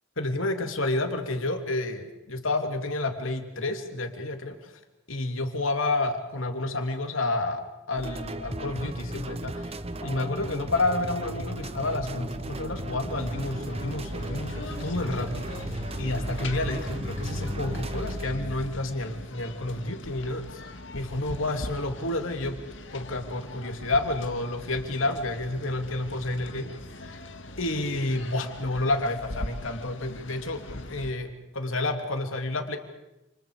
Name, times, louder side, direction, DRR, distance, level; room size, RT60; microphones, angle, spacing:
voice 1, 0.2-4.7 5.1-9.8 10.0-20.6 20.9-22.6 22.9-27.2 27.6-32.8, left 2 dB, 85° left, 4 dB, 3.1 m, -30 dB
sound 1, 8.0-18.3, right 1 dB, 30° right, 0.9 m, -36 dB
sound 2, 10.0-18.6, left 1 dB, 20° left, 6.1 m, -40 dB
sound 3, 13.1-31.1, left 1 dB, 65° left, 1.9 m, -42 dB
29.5 x 28.5 x 5.1 m, 0.92 s
head